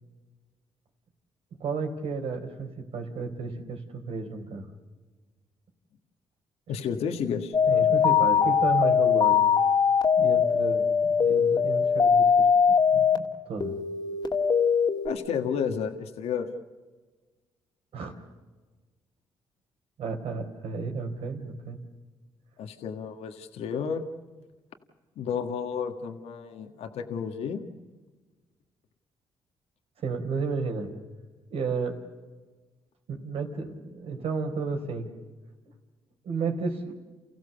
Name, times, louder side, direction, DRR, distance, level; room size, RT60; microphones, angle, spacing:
voice 1, 1.6-4.6 7.7-9.4 10.2-10.8 11.2-13.7 17.9-18.1 20.0-21.8 30.0-30.9 31.5-32.0 33.1-35.1 36.2-36.9, right 4 dB, 65° right, 4 dB, 4.1 m, -32 dB
voice 2, 6.7-7.5 15.0-16.5 22.6-24.0 25.1-27.6, left 7 dB, 75° left, 6 dB, 1.7 m, -31 dB
sound 1, 7.5-13.2 13.6-15.1, left 7 dB, 45° left, 2.1 m, -21 dB
30.0 x 15.5 x 6.9 m, 1.3 s
supercardioid pair, 65°, 11 cm